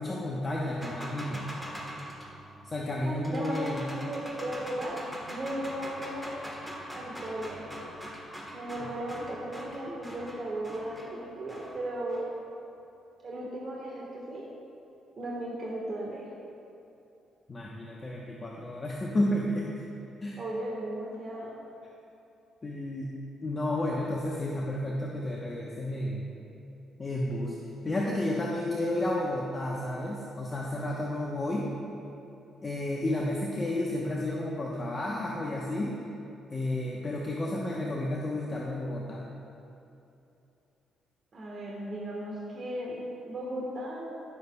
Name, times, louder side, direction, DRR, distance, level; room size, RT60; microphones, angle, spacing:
voice 1, 0.0-1.5 2.6-3.8 8.8-9.0 17.5-19.8 20.2-20.4 22.6-23.1 23.4-26.3 27.0-27.6 27.8-31.7 32.6-36.0 36.5-39.3, left 1 dB, 30° left, -3 dB, 0.9 m, -31 dB
sound 1, 0.8-12.4, equal, 5° right, 1.3 m, -43 dB
voice 2, 3.0-6.4 6.9-7.7 8.5-12.4 13.2-14.5 15.2-16.3 20.4-21.6 41.3-44.2, right 1 dB, 45° right, -4 dB, 1.4 m, -36 dB
16.5 x 6.9 x 2.3 m, 2.8 s
cardioid pair, 90°, 0 cm